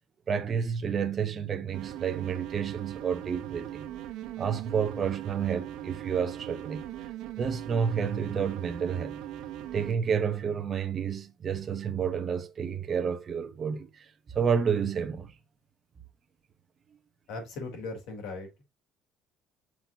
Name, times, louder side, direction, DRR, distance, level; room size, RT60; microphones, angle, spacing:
voice 1, 0.3-3.9 4.4-6.8 7.4-9.2 9.7-14.1 14.3-15.3, right 7 dB, 25° right, 0.9 m, -30 dB
sound 1, 1.7-9.9, right 12 dB, 65° right, 0.9 m, -40 dB
voice 2, 17.3-18.6, left 3 dB, 65° left, 3.4 m, -38 dB
7.4 x 5.9 x 2.8 m
cardioid pair, 180°, 0 cm